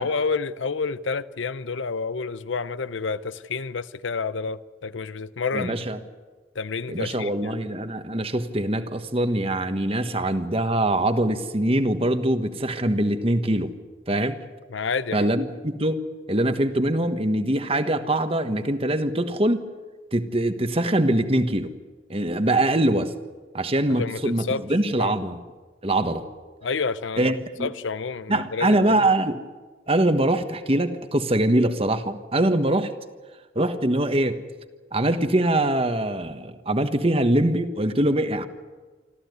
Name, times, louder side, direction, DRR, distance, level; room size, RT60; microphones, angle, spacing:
voice 1, 0.0-5.8 6.5-7.6 14.7-15.3 23.9-24.7 25.0-25.1 26.6-27.3 27.6-29.1, left 4 dB, 80° left, 0.7 m, -29 dB
voice 2, 5.5-6.0 6.9-13.7 14.1-14.4 15.1-19.6 20.1-21.7 22.1-23.1 23.5-25.4 25.8-26.2 27.2-27.7 28.3-29.4 29.9-32.9 33.5-34.4 34.9-38.4, right 1 dB, 30° right, 1.3 m, -23 dB
26.0 x 14.5 x 9.5 m
head